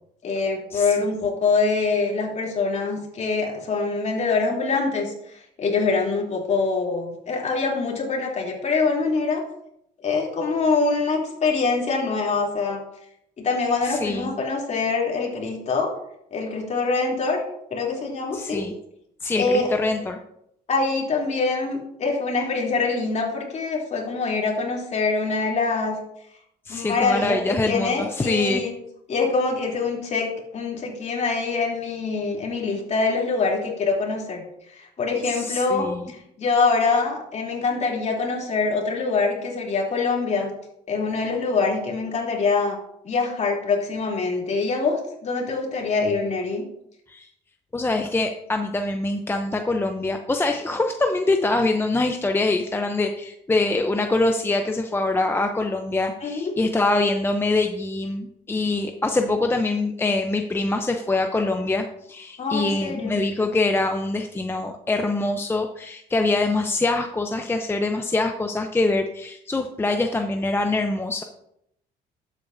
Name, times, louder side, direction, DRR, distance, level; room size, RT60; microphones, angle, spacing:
voice 1, 0.2-9.4 10.0-12.8 13.4-15.9 16.3-17.4 17.7-18.6 19.4-19.7 20.7-26.0 26.7-28.7 29.1-34.4 34.7-40.5 40.9-42.8 43.0-46.6 56.2-56.5 62.4-63.2, left 4 dB, 45° left, -1 dB, 3.0 m, -24 dB
voice 2, 13.8-14.3 18.3-18.7 19.2-20.2 26.7-28.7 35.2-36.0 47.1-47.3 47.7-71.2, left 2 dB, 15° left, 5 dB, 0.6 m, -24 dB
12.0 x 8.3 x 2.6 m, 0.77 s
cardioid pair, 110°, 17 cm